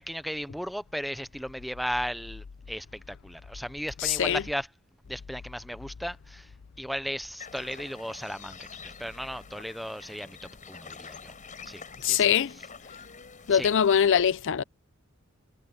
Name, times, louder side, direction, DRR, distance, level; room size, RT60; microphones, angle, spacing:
voice 1, 0.0-4.7 5.1-6.5 6.8-10.4 10.7-11.3 11.7-12.3 13.5-13.7, equal, ahead, 0.5 m, -36 dB
voice 2, 4.0-4.4 12.0-12.5 13.5-14.6, left 8 dB, 60° left, 0.5 m, -22 dB
sound 1, 7.4-14.1, left 5 dB, 35° left, 5.9 m, -46 dB
head